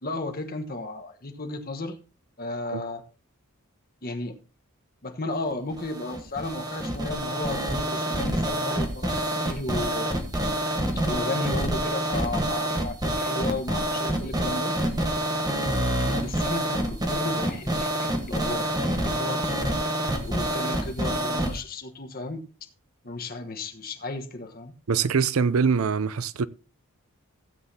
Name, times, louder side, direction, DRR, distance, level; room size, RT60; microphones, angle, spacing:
voice 1, 0.0-2.0 2.4-3.0 4.0-4.4 5.0-10.2 11.0-14.8 16.2-19.4 20.2-22.4 23.0-24.7, left 2 dB, 45° left, 1.2 m, -34 dB
sound 1, 5.7-21.6, right 1 dB, 20° right, 1.3 m, -27 dB
voice 2, 24.9-26.5, right 5 dB, 80° right, 0.5 m, -23 dB
16.5 x 8.1 x 2.8 m
head